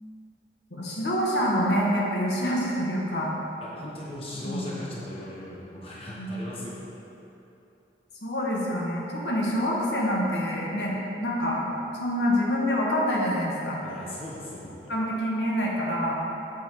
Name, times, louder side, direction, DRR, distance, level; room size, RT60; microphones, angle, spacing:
voice 1, 0.7-3.3 4.4-4.7 6.1-6.4 8.2-10.9 11.2-11.7 12.0-13.8 14.9-16.2, equal, 75° left, -3 dB, 1.1 m, -26 dB
voice 2, 3.6-6.8 13.8-14.9, left 1 dB, 30° left, -6 dB, 0.9 m, -38 dB
7.4 x 4.2 x 4.6 m, 2.9 s
head